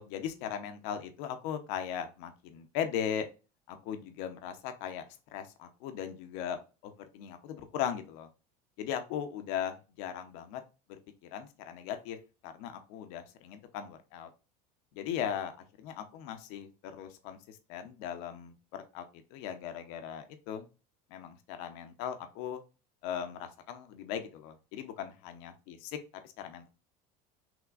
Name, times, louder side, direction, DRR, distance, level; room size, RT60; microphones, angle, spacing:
voice 1, 0.0-3.3 3.7-5.0 5.3-8.3 8.8-10.6 10.9-11.0 11.3-12.2 12.4-14.3 14.9-15.5 15.8-19.0 19.3-20.7 21.1-22.6 23.0-25.9 26.2-26.7, left 9 dB, 70° left, 7 dB, 0.9 m, -38 dB
6.1 x 2.9 x 2.5 m, 0.31 s
supercardioid pair, 100°, 20 cm